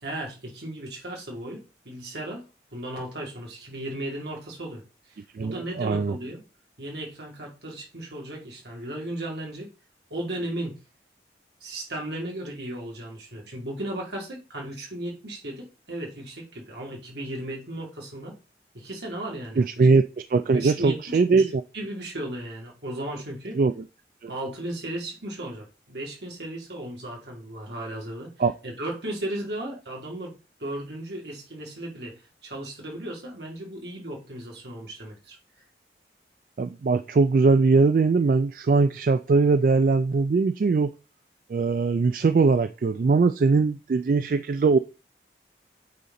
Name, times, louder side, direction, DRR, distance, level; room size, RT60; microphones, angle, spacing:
voice 1, 0.0-2.4 2.7-4.8 5.1-6.4 6.8-9.7 10.1-10.8 11.6-18.4 18.7-19.9 20.5-23.6 24.3-28.3 28.6-30.3 30.6-35.4, right 1 dB, 75° right, 2.5 m, -35 dB
voice 2, 5.3-6.2 19.6-20.0 20.3-21.6 23.5-23.8 24.2-24.3 28.4-28.5 36.6-40.9 41.5-44.8, right 4 dB, 50° right, 0.3 m, -21 dB
8.2 x 4.2 x 3.8 m
head